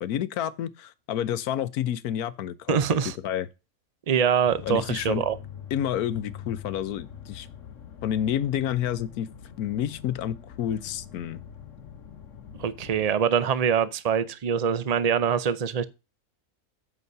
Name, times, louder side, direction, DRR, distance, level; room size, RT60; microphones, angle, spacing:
voice 1, 0.0-3.0 3.2-3.5 4.6-5.2 5.7-7.5 8.0-9.3 9.6-11.4, left 10 dB, 75° left, 1.2 m, -29 dB
voice 2, 2.7-3.1 4.1-5.4 12.6-15.8, right 7 dB, 55° right, 0.4 m, -24 dB
sound 1, 4.4-13.1, left 8 dB, 55° left, 1.3 m, -44 dB
8.2 x 5.6 x 5.4 m
omnidirectional pair, 1.6 m